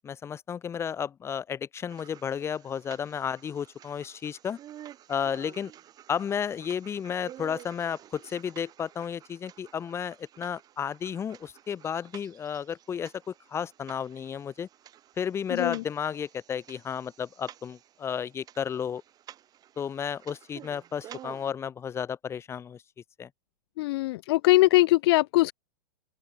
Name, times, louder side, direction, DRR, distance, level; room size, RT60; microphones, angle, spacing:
voice 1, 0.0-4.6 5.1-5.7 6.1-14.7 15.2-19.0 19.8-22.8 23.2-23.3, left 7 dB, 15° left, 3.5 m, -33 dB
sound 1, 1.9-21.5, right 11 dB, 20° right, 6.7 m, -51 dB
voice 2, 15.5-15.8 23.8-25.5, left 19 dB, 45° left, 0.9 m, -21 dB
open air
supercardioid pair, 165°, 19 cm